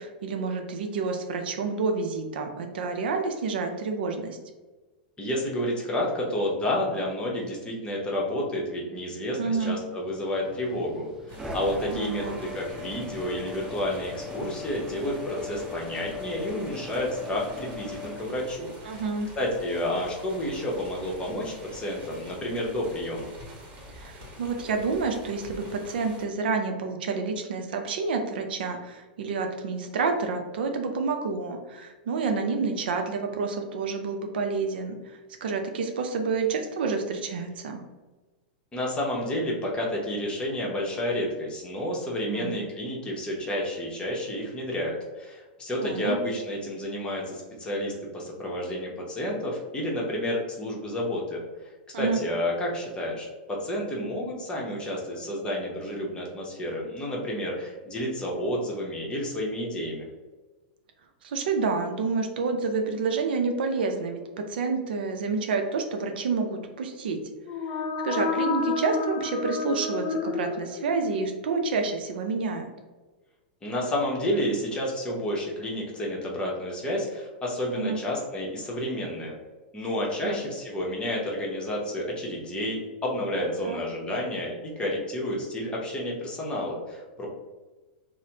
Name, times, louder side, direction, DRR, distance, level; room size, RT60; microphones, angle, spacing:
voice 1, 0.0-4.4 9.4-9.8 11.9-12.4 18.8-19.3 24.0-37.8 42.3-42.5 45.8-46.2 51.9-52.2 61.2-67.2 68.0-72.7 77.8-78.0 80.2-80.4 83.6-83.8, right 4 dB, 75° right, 5 dB, 0.5 m, -29 dB
voice 2, 5.2-19.0 19.4-23.3 38.7-51.4 52.0-60.1 73.6-79.3 79.7-87.3, left 1 dB, 15° left, -3 dB, 0.8 m, -30 dB
sound 1, 9.9-18.2, left 3 dB, 15° right, 0.5 m, -40 dB
sound 2, 11.3-26.3, equal, 40° right, 1.0 m, -46 dB
sound 3, 67.4-71.2, left 4 dB, 50° left, 0.4 m, -30 dB
3.1 x 2.0 x 2.8 m, 1.2 s
hypercardioid pair, 120°, 5 cm